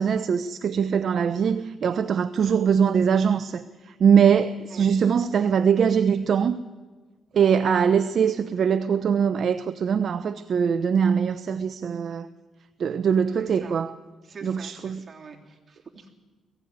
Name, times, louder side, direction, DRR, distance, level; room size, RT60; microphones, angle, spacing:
voice 1, 0.0-6.6 7.3-12.3 12.8-14.0 14.4-15.0, right 7 dB, 55° right, 0.7 m, -22 dB
voice 2, 13.4-13.7 14.2-16.1, right 4 dB, 35° right, 3.4 m, -45 dB
20.5 x 15.5 x 9.5 m
cardioid pair, 90°, 0 cm